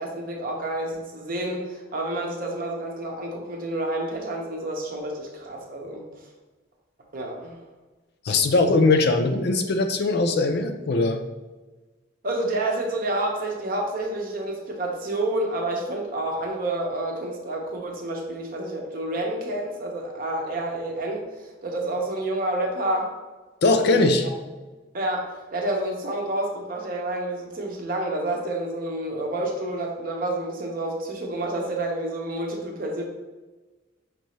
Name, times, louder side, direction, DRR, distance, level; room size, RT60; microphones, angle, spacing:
voice 1, 0.0-6.0 7.1-7.6 12.2-21.2 21.6-23.1 23.8-24.0 24.9-33.0, right 1 dB, 50° right, 0 dB, 0.8 m, -29 dB
voice 2, 8.2-11.2 23.6-24.3, left 3 dB, 60° left, 7 dB, 0.4 m, -20 dB
5.8 x 2.7 x 3.1 m, 1.2 s
head